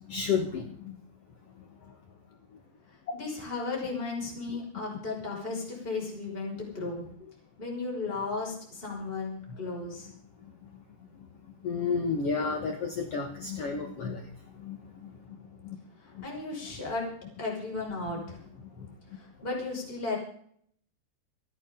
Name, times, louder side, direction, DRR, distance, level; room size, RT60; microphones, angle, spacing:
voice 1, 0.1-1.0 9.5-9.6 11.6-14.3 14.6-15.1 15.6-15.8 16.1-16.2 18.8-18.9, left 5 dB, 70° left, 3 dB, 1.4 m, -32 dB
voice 2, 3.1-7.0 7.6-10.1 16.2-17.1 17.4-18.4 19.1-20.2, left 3 dB, 10° left, -2 dB, 5.6 m, -35 dB
28.5 x 9.9 x 3.8 m, 0.62 s
omnidirectional pair, 5.0 m